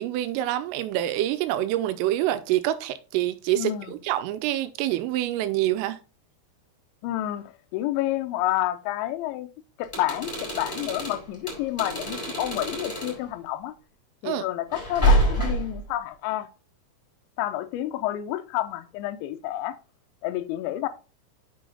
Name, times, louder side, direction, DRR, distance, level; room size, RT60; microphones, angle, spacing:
voice 1, 0.0-6.0 14.2-14.5, right 13 dB, 85° right, 3.2 m, -26 dB
voice 2, 3.6-3.9 7.0-9.5 9.8-13.7 14.2-16.5 17.4-19.8 20.2-20.9, left 14 dB, 85° left, 2.6 m, -29 dB
sound 1, 9.8-13.2 14.7-15.8, right 1 dB, 5° left, 3.0 m, -26 dB
7.7 x 5.5 x 3.8 m
omnidirectional pair, 5.9 m